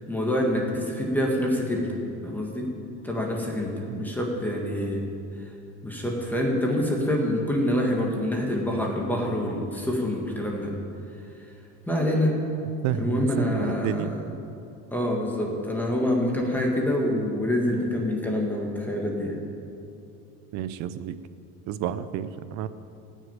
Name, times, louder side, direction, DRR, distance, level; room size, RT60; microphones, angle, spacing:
voice 1, 0.1-1.9 2.2-2.7 3.0-5.0 5.8-10.7 11.9-12.4 12.9-14.1 14.9-19.4, left 1 dB, 5° left, -1 dB, 1.6 m, -26 dB
voice 2, 12.8-14.2 20.5-21.2 21.7-22.7, right 10 dB, 45° right, 13 dB, 0.6 m, -30 dB
16.5 x 6.5 x 9.1 m, 2.7 s
cardioid pair, 160°, 39 cm